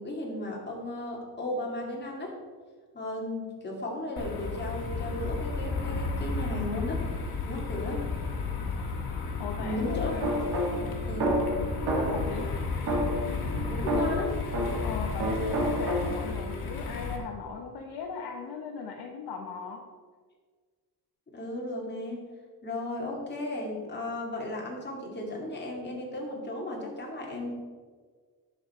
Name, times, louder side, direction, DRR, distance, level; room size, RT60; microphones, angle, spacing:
voice 1, 0.0-2.3 2.9-7.0 7.5-8.0 9.6-10.1 11.1-11.4 13.7-14.4 21.3-22.2 22.6-27.5, left 1 dB, 25° left, -2 dB, 2.4 m, -35 dB
sound 1, 4.2-17.2, left 4 dB, 65° left, 1.7 m, -33 dB
voice 2, 9.4-10.3 11.3-11.5 11.8-12.5 14.8-19.8, left 5 dB, 80° left, 0 dB, 1.1 m, -38 dB
sound 2, 10.2-12.4 12.9-14.9 15.2-16.4, right 1 dB, 85° right, 2.4 m, -29 dB
10.5 x 6.7 x 4.4 m, 1.5 s
cardioid pair, 135°, 38 cm